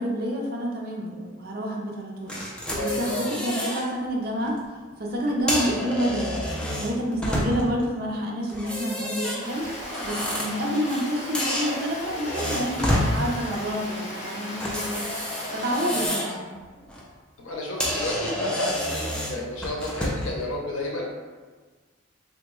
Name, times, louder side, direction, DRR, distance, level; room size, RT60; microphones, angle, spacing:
voice 1, 0.0-4.6 5.0-6.3 6.7-9.7 10.0-15.1 15.5-16.4, equal, 50° right, -1 dB, 0.5 m, -28 dB
sound 1, 2.3-3.8 4.3-4.5 5.3-7.8 8.5-11.1 11.3-13.1 14.6-16.4 16.8-17.0 17.5-17.6 17.8-20.3, equal, 5° left, 0.3 m, -29 dB
voice 2, 2.8-3.3 14.1-14.4 17.4-21.1, left 1 dB, 85° left, -2 dB, 0.7 m, -31 dB
Stream, 9.4-16.1, left 1 dB, 35° left, 0.7 m, -36 dB
3.5 x 2.1 x 3.0 m, 1.4 s
head